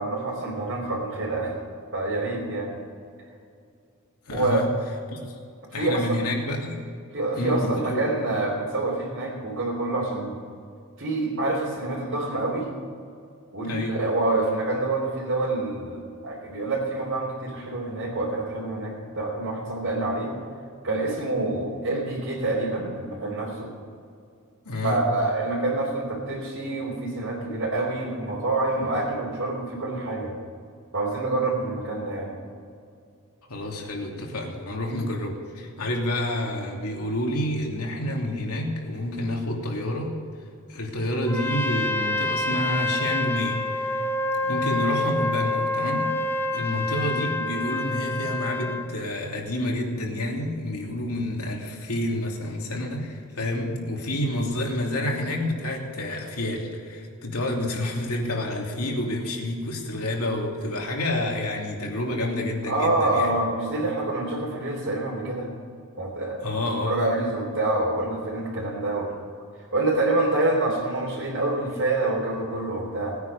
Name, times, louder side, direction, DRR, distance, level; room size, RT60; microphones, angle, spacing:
voice 1, 0.0-1.5 1.9-2.8 4.3-4.6 5.7-6.2 7.1-10.4 11.0-12.7 13.5-20.3 20.8-23.7 24.8-30.3 30.9-32.4 62.7-65.5 66.0-69.1 69.7-73.2, right 2 dB, 60° right, -7 dB, 3.3 m, -27 dB
voice 2, 4.3-4.7 5.1-5.4 5.7-6.8 7.3-8.0 13.6-13.9 24.6-25.0 33.5-40.1 40.7-44.0 44.4-46.1 46.5-63.4 66.4-67.0, left 1 dB, 80° left, 0 dB, 2.8 m, -29 dB
Trumpet, 41.3-48.9, left 2 dB, 10° left, 0.7 m, -27 dB
19.5 x 9.6 x 5.4 m, 2.3 s
head